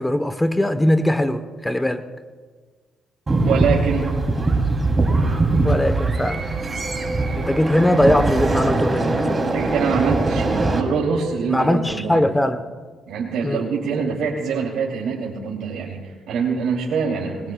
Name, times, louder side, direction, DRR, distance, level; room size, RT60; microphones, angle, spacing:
voice 1, 0.0-2.1 5.6-6.5 7.4-9.2 11.5-12.6 13.4-13.7, left 1 dB, 10° left, 10 dB, 0.8 m, -20 dB
sound 1, 3.3-10.8, right 2 dB, 30° right, 2.8 m, -21 dB
voice 2, 3.4-4.1 9.4-12.2 13.1-17.5, right 5 dB, 85° right, -3 dB, 2.7 m, -24 dB
24.5 x 21.0 x 2.3 m, 1.5 s
cardioid pair, 90°, 0 cm